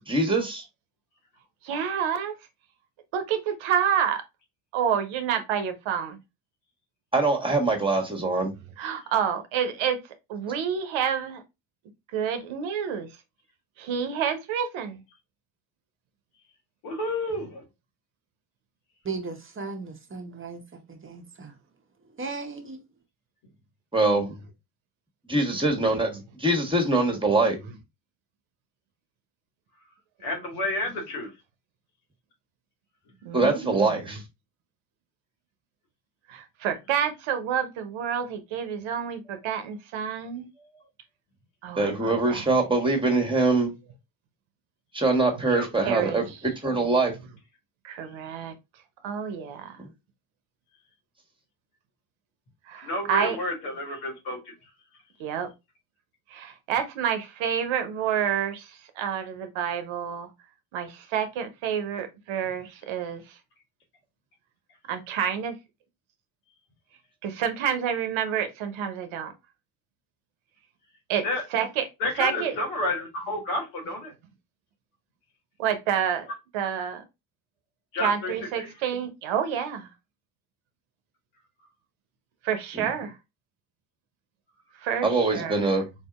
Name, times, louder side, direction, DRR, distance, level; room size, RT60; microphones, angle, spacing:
voice 1, 0.1-0.6 7.1-8.5 23.9-24.3 25.3-27.6 33.3-34.2 41.8-43.7 44.9-46.2 46.6-47.1 49.8-49.9 82.8-82.9 85.0-85.8, right 2 dB, 10° right, 1.3 m, -23 dB
voice 2, 1.6-2.3 3.1-4.2 4.7-6.2 8.8-10.0 10.3-11.4 12.1-13.1 13.8-15.0 33.2-34.0 36.3-40.5 41.6-42.6 45.8-46.4 47.8-48.5 49.0-49.8 52.7-53.4 55.2-55.5 56.3-60.3 60.7-63.4 64.9-65.5 67.2-69.3 71.1-71.2 71.5-71.8 72.2-72.5 75.6-76.3 76.5-77.0 78.0-79.9 82.4-83.2 84.8-85.7, right 8 dB, 70° right, 0.9 m, -28 dB
voice 3, 16.8-17.6 30.2-31.3 45.5-45.7 52.8-54.5 71.2-71.4 72.0-74.1 77.9-78.3 78.6-78.7, left 2 dB, 90° left, 1.6 m, -30 dB
voice 4, 19.0-21.5 22.2-22.8, right 4 dB, 25° right, 0.8 m, -36 dB
3.9 x 2.7 x 2.4 m
supercardioid pair, 65°, 49 cm